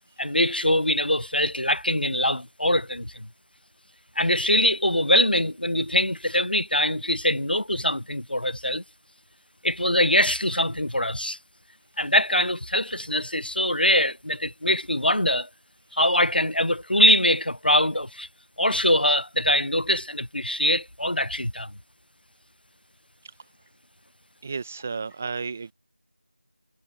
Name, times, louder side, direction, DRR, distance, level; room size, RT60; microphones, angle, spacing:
voice 1, 0.2-3.3 4.2-8.8 9.6-11.4 12.0-15.5 15.9-18.3 18.6-21.7, left 1 dB, 90° left, 1.1 m, -23 dB
voice 2, 24.4-25.7, right 5 dB, 10° right, 1.1 m, -32 dB
figure-of-eight pair, 175°, 5 cm